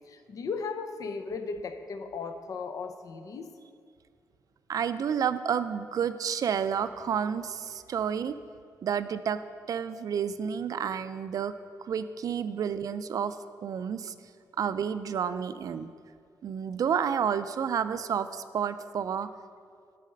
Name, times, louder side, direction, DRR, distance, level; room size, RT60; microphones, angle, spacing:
voice 1, 0.1-3.5, left 4 dB, 60° left, 8 dB, 0.6 m, -36 dB
voice 2, 4.7-8.3 8.8-9.4 9.7-11.5 11.8-14.1 14.6-15.9 16.4-19.3, right 7 dB, 60° right, 12 dB, 0.4 m, -30 dB
10.5 x 4.2 x 6.5 m, 2.2 s
cardioid pair, 95°, 7 cm